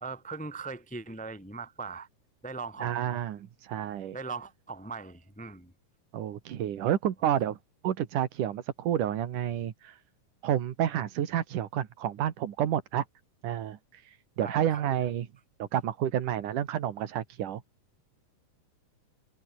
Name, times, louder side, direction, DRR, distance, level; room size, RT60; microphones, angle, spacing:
voice 1, 0.0-2.1 2.4-3.2 4.1-5.7 14.4-14.8, right 4 dB, 5° left, 1.2 m, -40 dB
voice 2, 2.8-4.2 6.1-7.6 7.8-10.0 10.4-13.0 13.4-15.3 15.6-17.6, right 10 dB, 65° right, 3.1 m, -30 dB
omnidirectional pair, 4.0 m